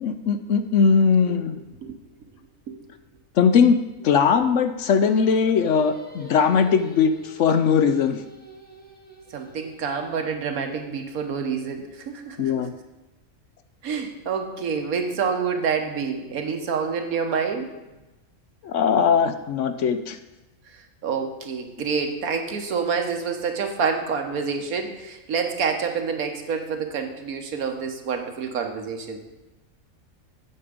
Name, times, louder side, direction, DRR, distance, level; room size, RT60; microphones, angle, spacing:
voice 1, 0.0-1.6 3.4-3.8 4.0-8.2 12.4-12.7 18.6-20.2, left 6 dB, 65° left, 9 dB, 0.8 m, -20 dB
Singing, 5.0-10.4, equal, 10° left, 0.9 m, -45 dB
voice 2, 9.3-12.5 13.8-17.7 21.0-29.2, right 6 dB, 80° right, 5 dB, 1.5 m, -27 dB
8.5 x 7.3 x 5.0 m, 1.0 s
omnidirectional pair, 1.5 m